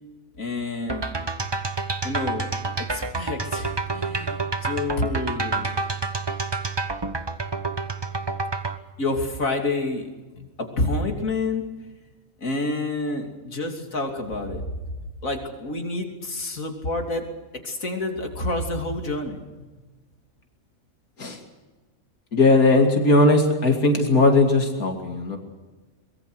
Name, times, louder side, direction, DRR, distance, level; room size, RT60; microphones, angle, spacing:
voice 1, 0.4-1.1 2.0-2.5 2.8-5.7 9.0-10.1 10.4-11.7 12.4-14.6 15.2-17.2 17.6-19.7, left 2 dB, 65° left, 3 dB, 3.5 m, -28 dB
sound 1, 0.9-8.8, right 3 dB, 20° right, 1.0 m, -28 dB
voice 2, 22.3-25.4, left 2 dB, 85° left, 2 dB, 3.0 m, -18 dB
24.0 x 22.0 x 6.4 m, 1.2 s
omnidirectional pair, 1.5 m